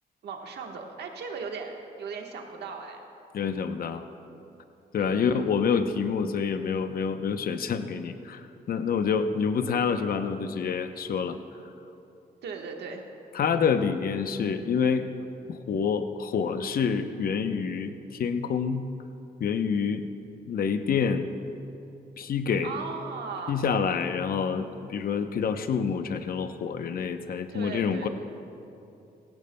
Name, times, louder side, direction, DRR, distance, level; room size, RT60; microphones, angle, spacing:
voice 1, 0.2-3.0 4.9-5.5 12.4-13.0 22.6-23.6 27.5-28.1, right 5 dB, 80° right, 2 dB, 1.3 m, -37 dB
voice 2, 3.3-4.0 4.9-11.4 13.3-15.1 15.5-18.9 19.4-20.1 20.5-21.3 22.2-22.7 23.5-28.1, left 6 dB, 60° left, 9 dB, 0.7 m, -27 dB
17.0 x 16.5 x 2.2 m, 2.7 s
cardioid pair, 80°, 17 cm